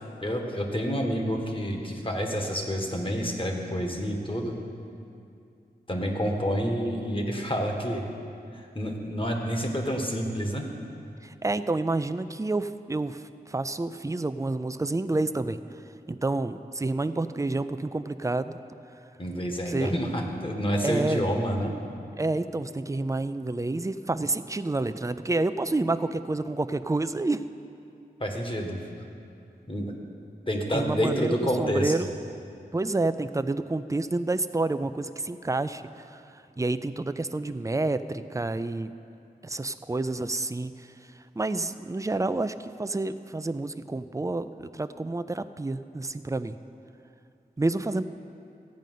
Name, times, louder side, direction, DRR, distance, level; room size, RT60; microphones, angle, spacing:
voice 1, 0.2-4.6 5.9-8.0 8.5-10.7 19.2-21.7 28.2-28.8 29.7-29.9 30.5-31.9, equal, 30° left, 1 dB, 1.5 m, -28 dB
voice 2, 11.2-15.6 16.1-18.6 19.7-19.9 20.8-21.3 22.2-27.4 30.7-32.1 32.7-38.9 39.4-40.9 41.4-46.6 47.6-48.0, right 2 dB, 20° right, 11 dB, 0.4 m, -29 dB
14.0 x 5.2 x 9.3 m, 2.6 s
wide cardioid pair, 60°, 17 cm